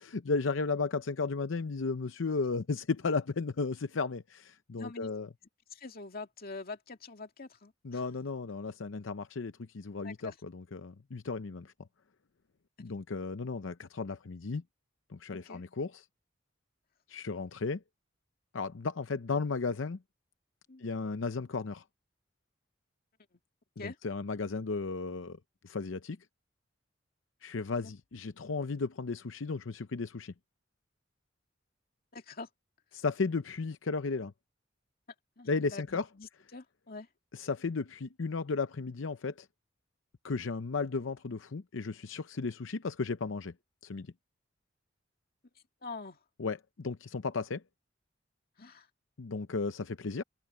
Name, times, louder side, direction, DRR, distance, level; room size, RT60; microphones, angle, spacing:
voice 1, 0.0-5.3 7.8-11.7 12.8-14.6 15.1-16.0 17.1-17.8 18.5-20.0 20.8-21.8 23.8-25.4 25.6-26.2 27.4-30.3 32.9-34.3 35.5-36.0 37.3-39.5 40.2-43.5 43.8-44.1 46.4-47.6 49.2-50.2, left 4 dB, 85° left, 0.7 m, -34 dB
voice 2, 4.7-5.1 5.7-8.0 10.0-10.4 12.8-12.9 15.3-15.6 20.7-20.8 23.3-23.4 23.8-24.0 27.8-27.9 32.1-32.5 35.4-37.1 45.8-46.2 48.6-48.9, left 3 dB, 50° left, 2.3 m, -45 dB
head